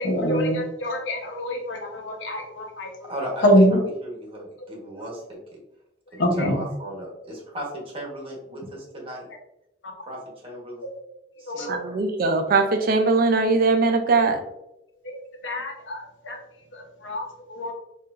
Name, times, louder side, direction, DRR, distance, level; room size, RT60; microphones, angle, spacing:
voice 1, 0.0-3.1 3.4-3.8 6.2-6.6 10.8-10.9 11.5-11.8 15.0-15.2 15.4-16.4 16.7-17.7, equal, 90° left, 2 dB, 0.8 m, -24 dB
voice 2, 3.0-5.4 6.1-9.3 10.0-10.9 11.4-12.0, equal, 30° right, -2 dB, 1.1 m, -36 dB
voice 3, 11.7-14.4, right 3 dB, 55° right, 6 dB, 0.4 m, -20 dB
4.6 x 2.5 x 2.4 m, 0.86 s
head